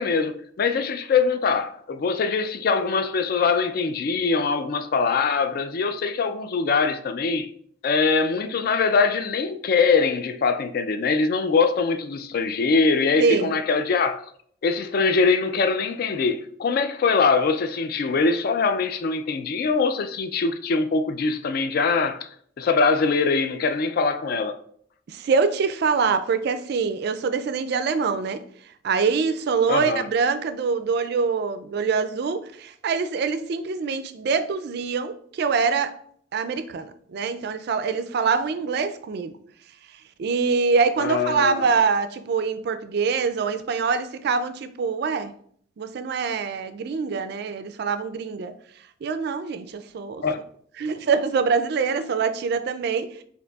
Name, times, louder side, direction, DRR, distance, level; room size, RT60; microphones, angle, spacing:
voice 1, 0.0-7.5 7.8-14.2 14.6-22.3 22.6-24.6 29.7-30.1 41.0-41.7 50.2-50.4, left 4 dB, 50° left, 0.3 m, -23 dB
voice 2, 13.2-13.5 25.1-28.4 28.8-35.9 36.3-39.3 40.2-45.3 45.8-48.5 49.0-50.2 50.8-53.2, right 5 dB, 55° right, 0.3 m, -24 dB
6.3 x 2.7 x 2.3 m
head